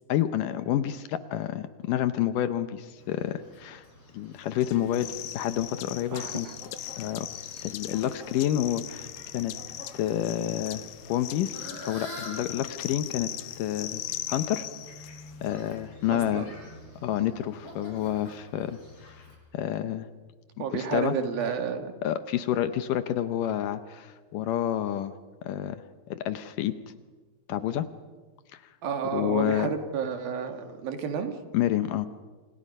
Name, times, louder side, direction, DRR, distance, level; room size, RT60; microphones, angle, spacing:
voice 1, 0.1-3.8 4.1-5.1 5.3-6.5 7.0-7.3 7.6-9.1 9.3-9.5 9.9-10.8 11.1-13.3 13.6-14.0 14.3-14.7 15.4-16.5 17.0-19.2 19.5-20.1 20.6-21.2 22.0-25.1 25.4-25.8 26.1-26.8 27.5-27.9 28.5-28.6 29.1-29.7 31.5-32.1, left 11 dB, 75° left, 11 dB, 2.2 m, -29 dB
Fowl, 3.0-19.3, left 1 dB, 40° left, 7.4 m, -48 dB
sound 1, 4.6-15.5, left 14 dB, 90° left, 2.8 m, -39 dB
voice 2, 6.1-6.5 16.1-16.5 20.6-21.9 28.8-31.3, right 6 dB, 75° right, 6 dB, 3.7 m, -31 dB
29.0 x 26.5 x 5.4 m, 1.4 s
omnidirectional pair, 4.3 m